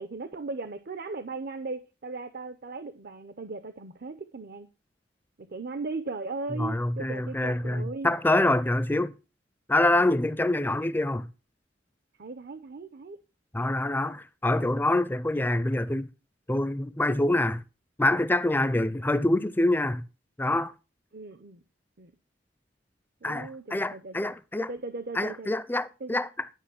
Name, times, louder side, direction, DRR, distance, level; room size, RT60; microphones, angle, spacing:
voice 1, 0.0-4.7 5.4-8.1 12.2-13.2 21.1-21.6 22.0-22.1 23.2-24.2 24.6-25.5 26.0-26.2, right 3 dB, 60° right, 0.7 m, -37 dB
voice 2, 6.6-9.1 9.7-11.3 13.5-16.1 16.5-17.6 18.0-20.0 20.4-20.7 23.2-24.7 25.2-26.3, left 1 dB, 10° left, 0.5 m, -25 dB
11.0 x 5.4 x 5.8 m
head